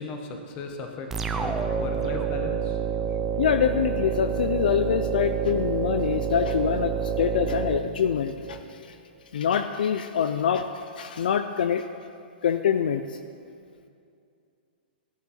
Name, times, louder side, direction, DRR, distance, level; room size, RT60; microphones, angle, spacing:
voice 1, 0.0-2.8, left 3 dB, 20° left, 3 dB, 0.9 m, -36 dB
sound 1, 1.1-8.6, right 7 dB, 5° right, 0.3 m, -28 dB
voice 2, 3.4-8.9 9.3-11.8 12.4-13.2, left 8 dB, 55° left, 9 dB, 0.4 m, -25 dB
14.5 x 8.7 x 4.2 m, 2.5 s
hypercardioid pair, 175°, 6 cm